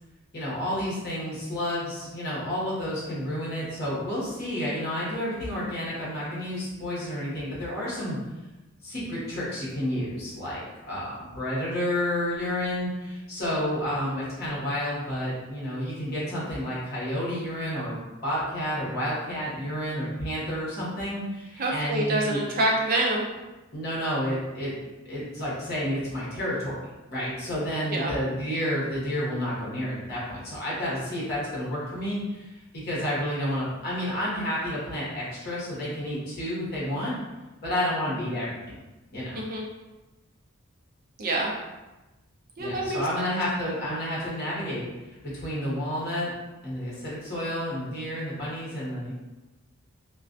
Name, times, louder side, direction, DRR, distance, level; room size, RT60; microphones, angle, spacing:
voice 1, 0.3-8.2 8.8-22.4 23.7-24.7 25.1-26.8 27.1-37.1 37.6-38.8 39.1-39.4 42.6-44.8 45.3-46.3 46.6-49.1, equal, 45° left, -7 dB, 0.9 m, -30 dB
voice 2, 21.6-23.3 27.9-28.1 39.3-39.6 41.2-41.5 42.6-43.3, right 1 dB, 40° right, -2 dB, 0.5 m, -26 dB
2.4 x 2.2 x 2.5 m, 1.1 s
head